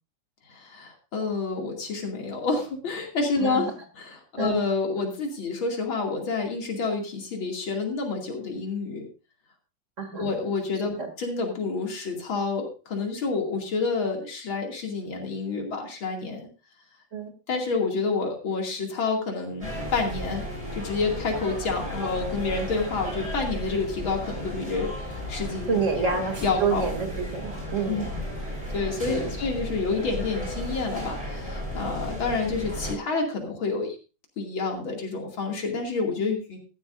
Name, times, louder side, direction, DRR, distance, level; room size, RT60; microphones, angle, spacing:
voice 1, 0.5-3.7 4.0-9.1 10.1-16.5 17.5-20.4 20.8-24.9 25.3-25.8 26.0-26.2 26.4-26.9 27.9-28.0 28.7-33.9 34.4-36.6, left 4 dB, 90° left, 1 dB, 3.3 m, -28 dB
voice 2, 10.0-10.3 11.0-11.1 17.1-17.3 25.7-28.1 29.1-29.3, right 5 dB, 40° right, 6 dB, 2.9 m, -28 dB
sound 1, 19.6-32.9, equal, 15° right, 5.2 m, -34 dB
15.5 x 12.5 x 2.6 m, 0.32 s
omnidirectional pair, 2.1 m